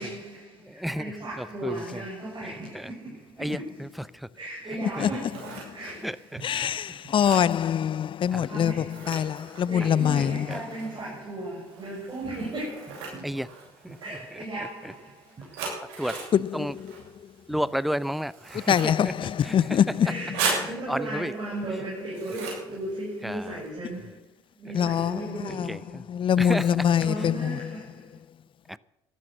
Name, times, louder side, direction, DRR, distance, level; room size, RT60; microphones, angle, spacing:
voice 1, 0.0-7.2 8.5-9.4 9.7-13.5 13.9-15.7 19.2-19.5 19.9-26.1 27.0-28.2, right 1 dB, 30° right, 6.8 m, -37 dB
voice 2, 0.6-1.1 1.4-1.8 2.4-2.9 3.4-3.9 4.1-4.3 5.0-5.1 6.0-6.4 7.3-7.4 8.3-8.5 10.2-10.6 13.2-13.5 13.8-14.0 16.0-16.2 16.5-16.7 17.5-19.1 19.4-19.5 20.9-21.3 23.2-23.5 25.7-26.0 26.4-26.7 28.7-28.8, equal, ahead, 0.7 m, -31 dB
Scissors, 4.9-23.7, right 4 dB, 70° right, 7.0 m, -39 dB
voice 3, 6.4-10.5 16.3-16.9 18.7-20.1 24.7-25.2 25.5-25.7 26.0-27.5, left 9 dB, 40° left, 0.5 m, -24 dB
14.5 x 12.0 x 7.9 m
hypercardioid pair, 55°, 14 cm